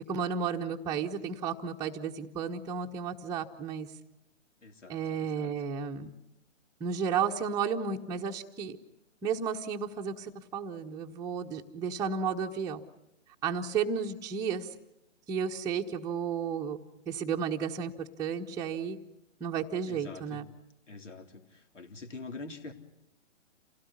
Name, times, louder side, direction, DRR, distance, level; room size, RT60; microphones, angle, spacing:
voice 1, 0.1-3.9 4.9-6.1 6.8-8.8 9.2-12.8 13.4-14.7 15.3-16.8 17.1-17.9 18.2-19.0 19.4-20.5, right 6 dB, 10° right, -2 dB, 1.1 m, -33 dB
voice 2, 4.6-5.5 19.9-20.4 20.9-22.7, left 3 dB, 75° left, 6 dB, 3.7 m, -45 dB
27.5 x 17.5 x 9.8 m, 0.90 s
figure-of-eight pair, 135°, 37 cm